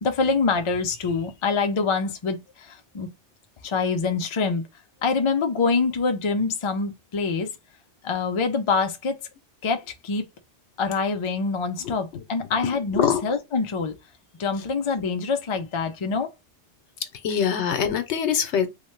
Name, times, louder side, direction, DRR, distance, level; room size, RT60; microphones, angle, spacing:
voice 1, 0.0-3.1 3.6-4.6 5.0-7.5 8.0-9.2 9.6-10.2 10.8-14.0 14.4-16.3, left 4 dB, 55° left, 0.3 m, -25 dB
voice 2, 11.8-12.2 13.0-13.2 17.2-18.7, left 8 dB, 75° left, 0.9 m, -24 dB
3.1 x 2.1 x 3.1 m
omnidirectional pair, 1.2 m